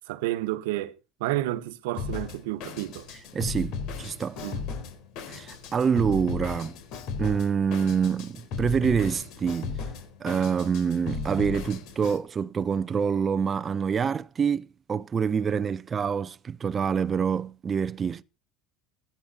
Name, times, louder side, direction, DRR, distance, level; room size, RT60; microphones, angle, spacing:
voice 1, 0.1-3.1 4.4-4.7, right 16 dB, 85° right, 1.1 m, -31 dB
Drum kit, 2.0-12.2, left 5 dB, 60° left, 3.9 m, -36 dB
voice 2, 3.3-3.7 4.0-4.4 5.3-6.7 7.2-9.8 10.2-18.2, right 6 dB, 25° right, 0.6 m, -26 dB
16.0 x 10.0 x 4.2 m
cardioid pair, 140°, 0 cm